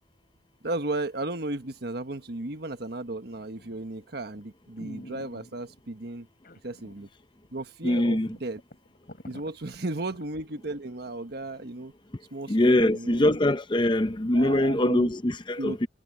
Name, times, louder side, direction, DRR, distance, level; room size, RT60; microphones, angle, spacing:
voice 1, 0.6-6.3 6.6-7.1 7.5-8.6 9.2-11.9 12.3-13.4 14.3-15.1 15.6-15.9, right 2 dB, 60° right, 1.4 m, -35 dB
sound 1, 3.6-3.9 4.4-4.5 4.8-5.8 6.4-7.1 7.4-7.5 8.0-8.1 8.4-10.2 10.7-10.8, equal, 55° left, 5.6 m, -47 dB
voice 2, 7.8-8.3 12.5-15.9, left 1 dB, 25° left, 0.7 m, -23 dB
head